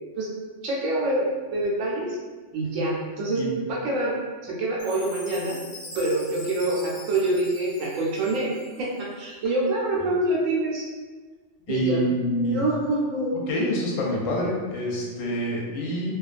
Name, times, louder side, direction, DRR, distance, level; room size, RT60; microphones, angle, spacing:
voice 1, 0.6-2.2 2.5-4.1 4.4-5.6 5.9-8.5 8.8-10.9 11.7-12.0 12.4-13.4, right 2 dB, 80° right, -4 dB, 1.0 m, -26 dB
Chime, 4.8-9.0, left 2 dB, 50° left, 0.4 m, -43 dB
voice 2, 11.7-12.6 13.5-16.1, equal, 85° left, -2 dB, 1.0 m, -26 dB
2.4 x 2.3 x 2.4 m, 1.4 s
omnidirectional pair, 1.3 m